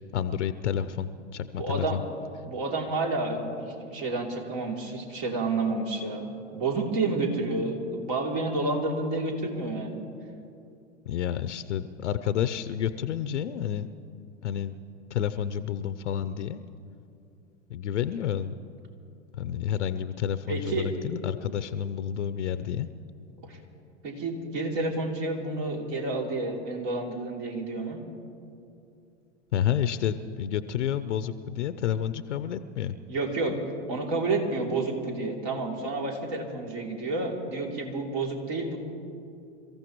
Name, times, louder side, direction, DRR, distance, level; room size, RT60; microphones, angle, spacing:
voice 1, 0.1-2.0 11.1-13.9 14.4-14.7 15.1-16.6 17.7-18.5 19.3-22.9 29.5-32.9, left 9 dB, 75° left, 13 dB, 0.7 m, -30 dB
voice 2, 1.6-2.0 2.5-10.0 20.5-21.0 23.4-23.6 24.0-28.0 33.1-33.6 33.9-38.8, right 3 dB, 50° right, 0 dB, 3.1 m, -30 dB
28.5 x 14.5 x 3.1 m, 2.6 s
hypercardioid pair, 100°, 36 cm